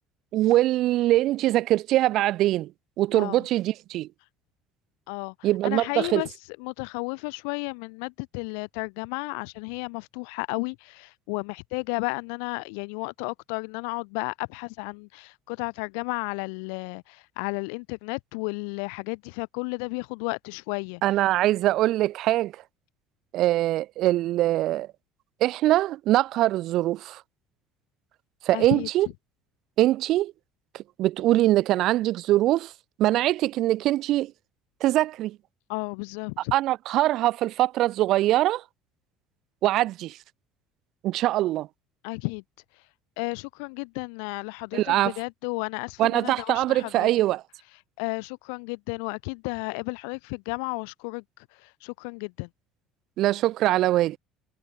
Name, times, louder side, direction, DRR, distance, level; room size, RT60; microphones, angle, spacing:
voice 1, 0.3-2.7 3.0-4.1 5.4-6.2 21.0-22.5 23.3-24.9 25.4-27.2 28.5-29.1 29.8-30.3 30.7-32.7 33.0-34.3 34.8-35.4 36.5-38.6 39.6-40.2 41.0-41.7 44.7-45.1 46.0-47.4 53.2-54.2, right 15 dB, 60° right, 2.2 m, -23 dB
voice 2, 3.1-3.5 5.1-21.2 28.5-28.9 35.7-36.5 42.0-42.4 42.8-42.9 43.2-47.1 48.0-52.5, left 40 dB or more, 85° left, 3.8 m, -33 dB
cardioid pair, 115°, 0 cm